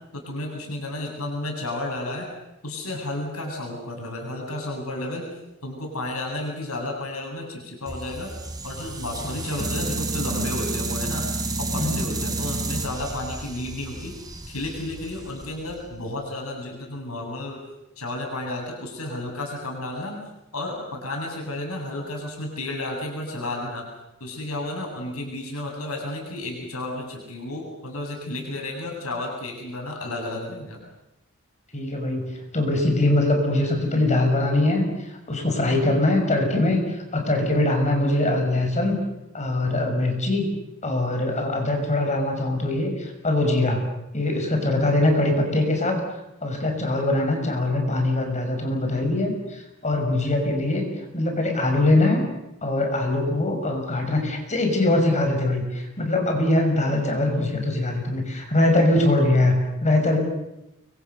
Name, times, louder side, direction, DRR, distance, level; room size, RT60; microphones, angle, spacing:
voice 1, 0.1-2.3 2.6-5.3 5.6-8.3 8.6-11.3 11.6-14.2 14.5-17.6 18.0-20.2 20.5-23.9 24.2-30.8 38.3-38.5, left 1 dB, 80° left, 0 dB, 8.0 m, -32 dB
sound 1, 7.9-16.0, right 2 dB, 15° right, 3.9 m, -31 dB
voice 2, 31.7-39.0 39.3-40.5 40.8-43.8 44.1-46.0 46.4-50.8 51.1-52.2 52.6-60.2, left 2 dB, 35° left, 3 dB, 5.9 m, -22 dB
29.5 x 24.5 x 6.7 m, 0.90 s
head